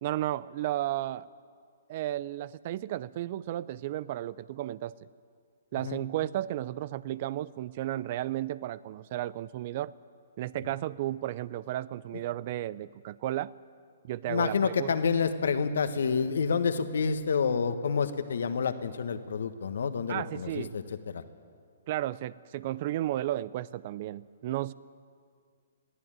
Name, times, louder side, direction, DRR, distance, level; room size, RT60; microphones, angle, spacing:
voice 1, 0.0-1.3 1.9-4.9 5.7-9.9 10.4-13.5 14.0-14.9 20.1-20.8 21.9-24.7, right 14 dB, 45° right, 20 dB, 0.5 m, -33 dB
voice 2, 14.3-21.2, left 5 dB, 70° left, 10 dB, 1.4 m, -28 dB
21.5 x 14.5 x 8.9 m, 2.2 s
hypercardioid pair, 130°, 0 cm